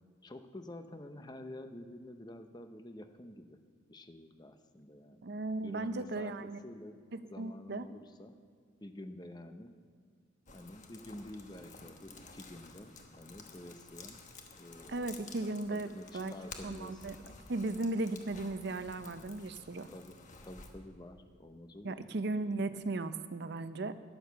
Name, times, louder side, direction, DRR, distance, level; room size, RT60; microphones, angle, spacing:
voice 1, 0.2-3.6 3.9-5.2 5.6-7.0 7.3-8.4 8.8-9.7 10.5-14.2 14.6-15.2 15.7-17.1 19.9-22.1, left 1 dB, 20° left, 8 dB, 0.7 m, -49 dB
voice 2, 5.2-6.6 7.1-7.9 14.9-15.9 16.1-16.3 16.6-17.2 17.5-19.9 21.8-23.9, right 2 dB, 55° right, 12 dB, 0.6 m, -36 dB
sound 1, 10.5-20.7, left 4 dB, 40° left, 1.2 m, -53 dB
11.0 x 10.5 x 6.9 m, 2.1 s
head